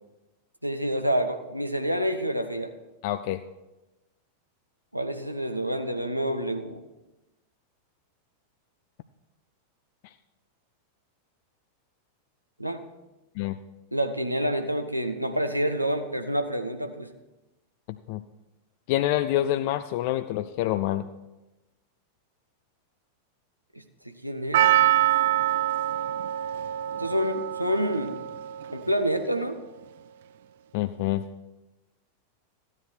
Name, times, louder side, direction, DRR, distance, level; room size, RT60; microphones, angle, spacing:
voice 1, 0.6-2.7 4.9-6.8 12.6-12.8 13.9-17.1 24.0-24.9 27.0-28.2 28.7-29.6, equal, 90° right, 7 dB, 1.0 m, -28 dB
voice 2, 3.0-3.4 13.4-13.6 18.1-18.2 18.9-21.1 30.7-31.2, left 13 dB, 50° left, 10 dB, 0.4 m, -26 dB
Percussion, 24.5-28.9 29.2-29.3, right 13 dB, 55° right, 0.4 m, -25 dB
14.0 x 9.8 x 4.5 m, 1.0 s
figure-of-eight pair, 90°, 0 cm